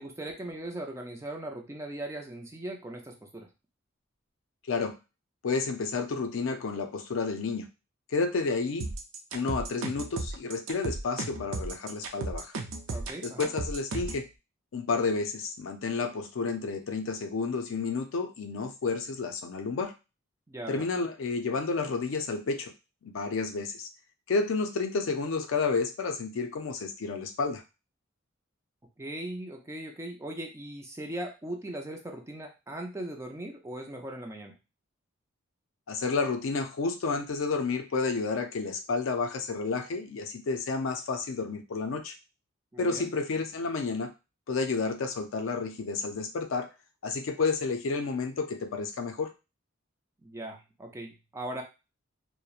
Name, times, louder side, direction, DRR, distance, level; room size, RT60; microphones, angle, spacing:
voice 1, 0.0-3.5 12.9-13.5 20.5-20.8 29.0-34.5 42.7-43.1 50.2-51.6, right 1 dB, 15° right, 2 dB, 0.4 m, -39 dB
voice 2, 4.7-5.0 5.4-7.7 8.1-8.9 9.3-12.5 13.2-14.3 14.7-19.9 20.7-22.7 23.0-23.9 24.3-27.6 35.9-42.1 42.8-44.1 44.5-46.7 47.0-49.3, left 4 dB, 70° left, 6 dB, 0.4 m, -30 dB
sound 1, 8.8-14.2, right 3 dB, 75° right, 0.5 m, -35 dB
2.8 x 2.1 x 2.3 m, 0.28 s
head